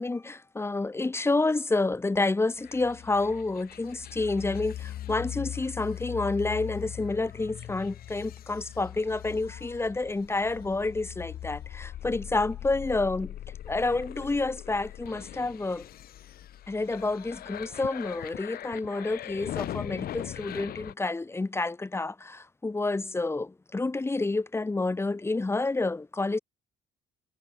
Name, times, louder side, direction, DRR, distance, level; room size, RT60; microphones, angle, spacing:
voice 1, 0.0-13.4 13.7-15.9 16.7-26.4, left 3 dB, 15° left, 1.5 m, -29 dB
sound 1, 2.6-20.9, left 12 dB, 65° left, 7.7 m, -40 dB
cardioid pair, 110°, 17 cm